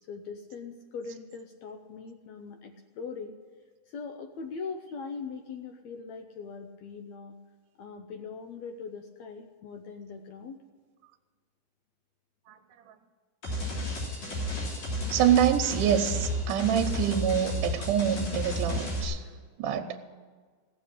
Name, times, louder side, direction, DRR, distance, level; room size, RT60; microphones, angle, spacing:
voice 1, 0.1-3.3 3.9-7.4 7.8-10.6, left 5 dB, 75° left, 5 dB, 1.7 m, -41 dB
sound 1, 13.4-19.0, left 1 dB, 50° left, 4.5 m, -32 dB
voice 2, 15.1-19.2 19.6-20.0, right 9 dB, 80° right, 4 dB, 2.3 m, -26 dB
16.5 x 7.1 x 10.0 m, 1.5 s
omnidirectional pair, 3.8 m